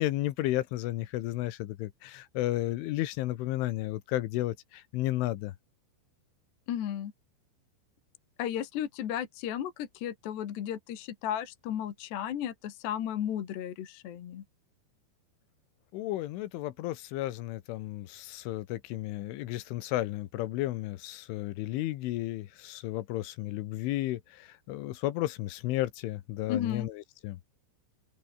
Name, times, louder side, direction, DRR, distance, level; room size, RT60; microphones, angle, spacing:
voice 1, 0.0-5.5 15.9-27.4, left 16 dB, 80° left, 3.6 m, -33 dB
voice 2, 6.7-7.1 8.4-14.4 26.5-26.9, left 10 dB, 60° left, 4.1 m, -34 dB
open air
omnidirectional pair, 5.7 m